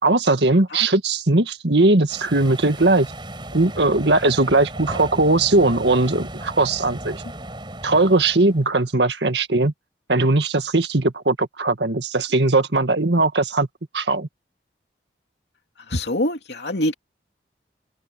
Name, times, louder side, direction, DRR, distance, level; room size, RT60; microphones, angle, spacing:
voice 1, 0.0-3.1 3.5-7.2 7.8-9.7 10.1-13.7 13.9-14.3, right 2 dB, 75° right, 1.9 m, -19 dB
sound 1, 2.1-8.8, right 1 dB, 25° right, 4.3 m, -36 dB
voice 2, 15.9-16.9, left 1 dB, 70° left, 2.7 m, -24 dB
open air
head